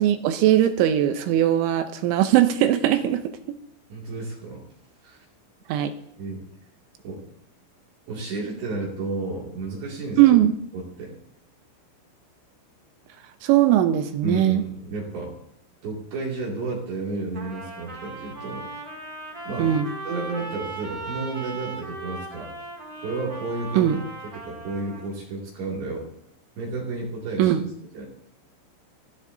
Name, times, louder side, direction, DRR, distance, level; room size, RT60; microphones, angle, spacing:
voice 1, 0.0-3.2 3.5-3.6 5.7-5.9 10.2-10.5 13.4-14.6 19.6-19.9 23.7-24.0 27.4-27.6, right 12 dB, 80° right, 8 dB, 2.9 m, -19 dB
voice 2, 3.9-4.6 5.0-5.3 6.2-6.4 7.0-7.2 8.1-10.4 10.7-11.1 14.2-15.3 15.8-18.7 19.5-19.7 20.0-22.5 23.0-24.0 24.3-26.1 26.6-27.6 27.9-28.1, right 3 dB, 60° right, -4 dB, 4.3 m, -32 dB
Trumpet, 17.3-25.1, right 2 dB, 35° right, 1.4 m, -38 dB
24.0 x 15.5 x 2.7 m, 0.72 s
omnidirectional pair, 5.9 m